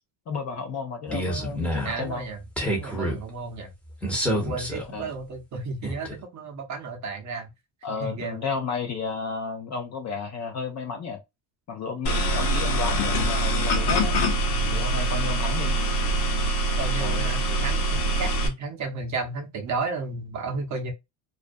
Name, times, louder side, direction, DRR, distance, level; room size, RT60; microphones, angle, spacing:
voice 1, 0.3-2.3 4.9-5.1 7.8-11.2 11.7-14.2 14.7-15.8 17.0-17.3, left 5 dB, 35° left, 0.4 m, -32 dB
sound 1, 1.1-2.1 2.6-3.2 4.0-4.8 5.8-6.2, equal, ahead, 0.7 m, -28 dB
voice 2, 1.8-2.4 2.8-3.7 4.2-7.5 8.0-8.4 16.8-20.9, right 3 dB, 35° right, 0.7 m, -33 dB
sound 2, 12.1-18.5, right 1 dB, 55° left, 0.9 m, -24 dB
2.4 x 2.1 x 2.5 m
cardioid pair, 135°, 49 cm